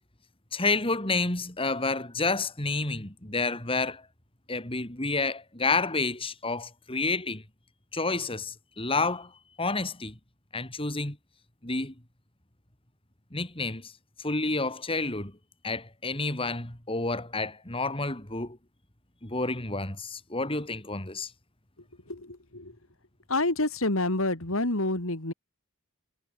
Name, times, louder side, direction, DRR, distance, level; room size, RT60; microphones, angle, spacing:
voice 1, 0.5-4.0 4.5-7.4 7.9-9.3 9.6-10.1 10.5-11.2 11.6-11.9 13.3-13.8 14.2-15.3 15.6-18.6 19.2-21.3, left 3 dB, 25° left, 3.4 m, -29 dB
voice 2, 22.1-22.8 23.3-25.3, left 2 dB, 70° left, 3.3 m, -28 dB
head